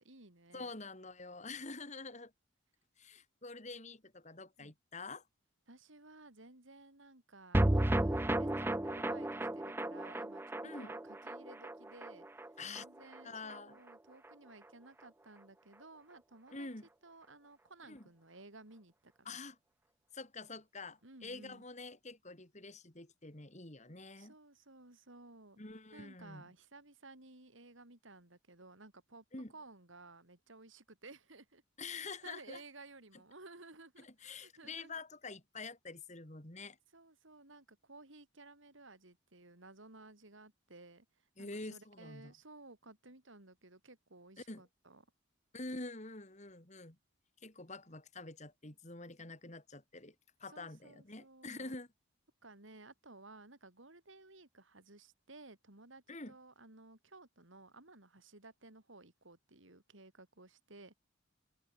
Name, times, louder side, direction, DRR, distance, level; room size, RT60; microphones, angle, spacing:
voice 1, 0.0-0.7 4.6-4.7 5.7-12.3 12.7-16.7 17.0-19.4 21.0-21.6 24.2-25.6 25.9-29.2 29.5-35.0 36.9-45.0 50.4-51.7 52.4-60.9, right 2 dB, 75° right, 3.9 m, -56 dB
voice 2, 0.5-2.3 3.0-5.2 10.6-10.9 12.6-12.8 13.2-13.8 16.5-16.9 17.9-18.0 19.2-19.6 20.1-24.3 25.6-26.4 29.3-29.5 31.8-32.6 34.0-36.8 41.4-42.3 44.5-44.6 45.5-47.0 47.4-50.1 50.4-51.9 56.1-56.3, left 3 dB, 35° left, 3.3 m, -47 dB
sound 1, 7.5-14.0 14.2-14.3 14.6-14.7, right 1 dB, 10° right, 0.5 m, -34 dB
open air
head